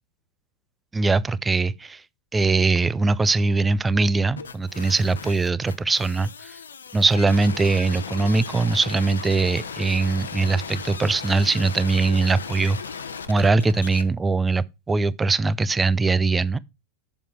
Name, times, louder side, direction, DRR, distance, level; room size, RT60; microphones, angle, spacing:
voice 1, 0.9-2.0 2.3-6.6 6.9-12.8 13.3-16.6, right 3 dB, 10° right, 0.4 m, -21 dB
sound 1, 4.4-14.0, left 6 dB, 70° left, 0.8 m, -36 dB
7.6 x 7.0 x 4.3 m
figure-of-eight pair, 90°, 0 cm